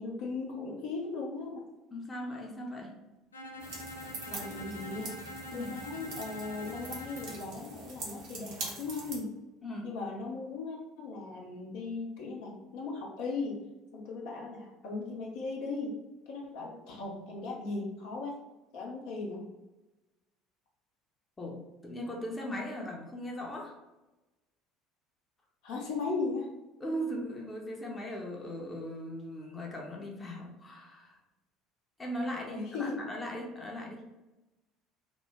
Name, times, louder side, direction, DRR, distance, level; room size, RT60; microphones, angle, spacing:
voice 1, 0.0-1.6 4.3-5.2 5.5-9.2 9.8-13.6 13.9-16.0 16.3-18.4 18.7-19.5 25.6-26.5 32.5-33.0, left 3 dB, 60° left, -2 dB, 0.7 m, -37 dB
voice 2, 1.9-3.0 5.5-5.8 9.6-10.0 21.4-23.8 26.8-31.2 32.0-34.0, equal, 20° left, -1 dB, 0.7 m, -39 dB
Bowed string instrument, 3.3-7.5, equal, 85° left, 0.3 m, -44 dB
sound 1, 3.6-9.2, right 3 dB, 60° right, 0.8 m, -43 dB
2.9 x 2.1 x 3.4 m, 1.1 s
figure-of-eight pair, 60°, 0 cm